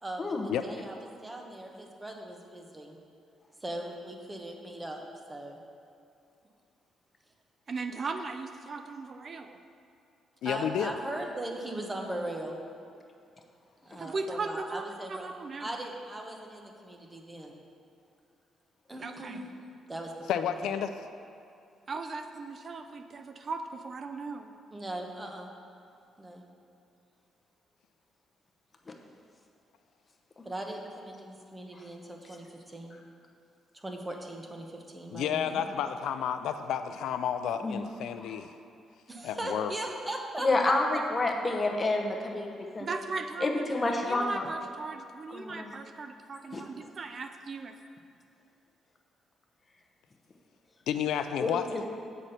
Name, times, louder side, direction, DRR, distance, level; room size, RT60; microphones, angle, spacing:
voice 1, 0.0-1.0 1.2-3.0 3.6-5.0 5.3-5.6 10.4-12.6 13.8-15.3 15.6-17.5 18.9-19.4 19.9-20.6 24.7-25.5 26.2-26.4 30.4-32.9 33.7-35.7 39.1-40.7 42.3-42.4 51.5-51.6, right 1 dB, 15° right, 2 dB, 1.0 m, -39 dB
voice 2, 7.7-9.6 14.0-15.7 19.0-19.4 21.9-24.5 42.8-47.7, right 4 dB, 45° right, 7 dB, 0.4 m, -38 dB
voice 3, 10.4-10.9 20.3-20.9 35.1-38.5 39.2-39.7 50.9-51.6, left 9 dB, 80° left, 9 dB, 0.3 m, -31 dB
voice 4, 40.4-42.9 43.4-44.5 45.3-45.7 46.5-46.6 51.4-51.9, left 2 dB, 25° left, 2 dB, 0.9 m, -29 dB
7.3 x 4.1 x 6.6 m, 2.6 s
cardioid pair, 90°, 0 cm